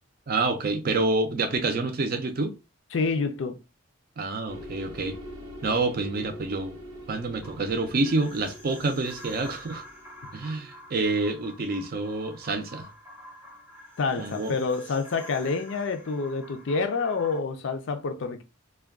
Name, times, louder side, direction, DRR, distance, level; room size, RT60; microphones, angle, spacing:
voice 1, 0.3-2.5 4.2-5.2 5.6-6.8 7.1-9.8 10.3-12.9 14.2-14.5, right 3 dB, 40° right, 0.4 m, -27 dB
voice 2, 2.9-3.6 14.0-18.4, left 4 dB, 60° left, 0.4 m, -28 dB
sound 1, 4.5-11.6, equal, 90° right, 0.9 m, -45 dB
sound 2, 7.4-17.4, left 1 dB, 10° right, 0.7 m, -47 dB
2.3 x 2.2 x 3.5 m
head